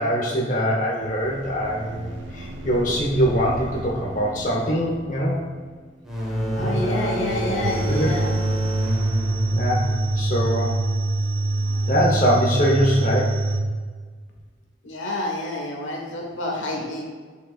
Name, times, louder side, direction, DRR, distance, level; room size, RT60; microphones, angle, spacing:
voice 1, 0.0-5.4 6.6-8.1 9.5-9.8 10.2-10.8 11.9-13.4, equal, 40° left, -3 dB, 0.9 m, -23 dB
sound 1, 1.0-10.6 11.2-13.3, right 1 dB, 85° right, 0.7 m, -40 dB
sound 2, 6.0-11.5, equal, 5° right, 1.2 m, -29 dB
voice 2, 6.5-8.3 14.8-17.0, left 1 dB, 80° left, -1 dB, 1.3 m, -28 dB
sound 3, 7.6-13.6, right 2 dB, 55° right, 0.9 m, -24 dB
8.8 x 5.4 x 2.4 m, 1.5 s
head